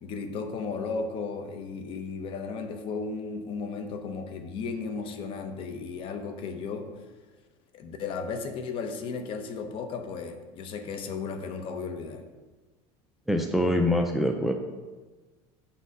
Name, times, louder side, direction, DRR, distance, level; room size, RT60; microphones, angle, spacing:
voice 1, 0.0-7.0 7.7-12.2, left 4 dB, 45° left, 7 dB, 0.8 m, -35 dB
voice 2, 13.3-14.5, left 1 dB, ahead, 4 dB, 0.4 m, -24 dB
8.0 x 4.3 x 4.9 m, 1.3 s
cardioid pair, 145°, 13 cm